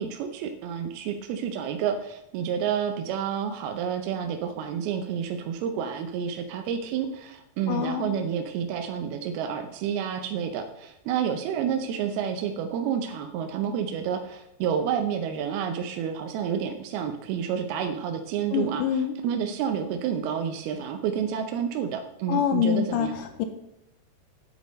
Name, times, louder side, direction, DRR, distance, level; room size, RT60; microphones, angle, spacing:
voice 1, 0.0-23.2, right 8 dB, 85° right, 5 dB, 2.7 m, -29 dB
voice 2, 7.7-8.2 18.5-19.1 22.3-23.5, left 8 dB, 75° left, 8 dB, 2.0 m, -26 dB
9.6 x 8.1 x 5.2 m, 0.81 s
omnidirectional pair, 4.4 m